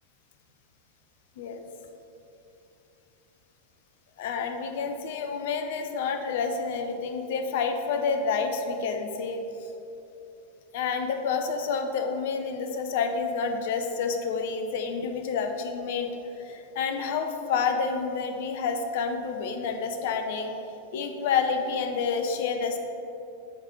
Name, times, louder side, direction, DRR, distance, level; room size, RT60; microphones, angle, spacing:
voice 1, 4.2-9.4 10.7-16.1 16.4-20.5 20.9-22.8, left 5 dB, 55° left, 6 dB, 0.6 m, -29 dB
8.3 x 3.8 x 4.5 m, 2.9 s
figure-of-eight pair, 90°, 0 cm